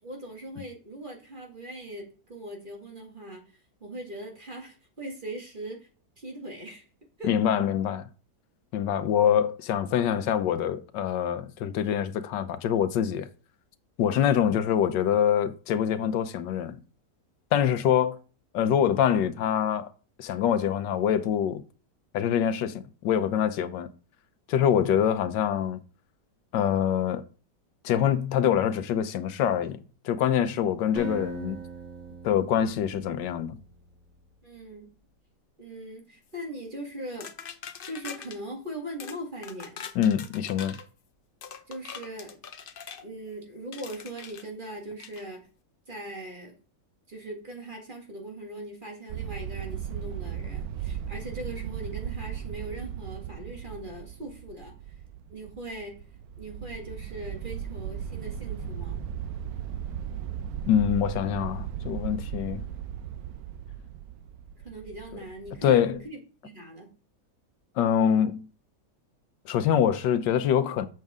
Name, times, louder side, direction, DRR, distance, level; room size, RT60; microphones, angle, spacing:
voice 1, 0.0-3.4 3.8-5.9 6.2-6.9 7.2-7.3 14.1-14.4 25.0-25.2 34.4-34.9 35.6-37.3 37.8-39.8 41.7-42.4 43.0-45.4 45.9-46.5 47.1-54.7 55.3-56.0 56.4-59.0 64.6-66.9, right 1 dB, 30° right, 1.8 m, -40 dB
voice 2, 7.2-8.1 8.7-13.3 14.0-16.8 17.5-18.2 18.5-19.9 20.2-21.6 22.1-23.9 24.5-25.8 26.5-27.2 27.8-29.8 30.0-31.6 32.2-33.6 40.0-40.8 60.7-62.6 65.6-66.0 67.8-68.5 69.5-70.9, left 9 dB, 90° left, 1.4 m, -25 dB
Acoustic guitar, 31.0-34.0, right 5 dB, 85° right, 2.6 m, -41 dB
sound 1, 37.2-38.4 39.0-39.2 39.4-40.9 41.4-43.0 43.7-44.4 45.0-45.2, left 7 dB, 65° left, 0.5 m, -42 dB
sound 2, 49.1-66.0, right 9 dB, 70° right, 1.0 m, -37 dB
7.6 x 6.5 x 3.6 m
omnidirectional pair, 1.9 m